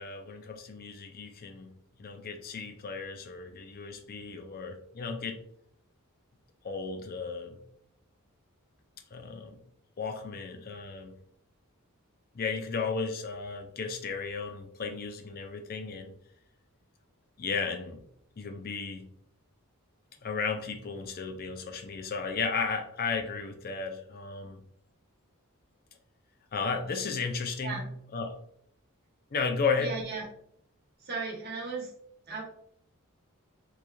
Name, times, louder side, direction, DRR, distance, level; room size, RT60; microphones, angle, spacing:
voice 1, 0.0-5.4 6.6-7.6 9.1-9.6 10.0-11.2 12.3-16.1 17.4-18.0 18.4-19.1 20.2-24.6 26.5-28.4 29.3-29.9, left 5 dB, 45° left, 0.5 m, -34 dB
voice 2, 29.8-30.2 31.0-31.9 32.3-32.4, right 4 dB, 45° right, 1.1 m, -36 dB
3.7 x 3.1 x 2.3 m
head